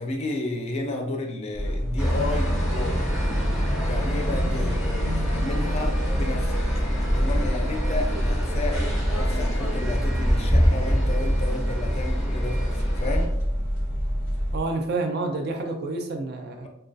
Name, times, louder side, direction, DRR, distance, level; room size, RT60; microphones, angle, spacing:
voice 1, 0.0-3.1 3.9-6.6 7.1-13.3, left 2 dB, 30° left, 3 dB, 0.3 m, -32 dB
sound 1, 1.5-14.6, equal, 75° right, 1.1 m, -27 dB
sound 2, 2.0-13.3, equal, ahead, 0.7 m, -27 dB
voice 2, 14.5-16.7, right 3 dB, 55° right, 4 dB, 0.4 m, -28 dB
2.2 x 2.2 x 2.5 m, 0.82 s
head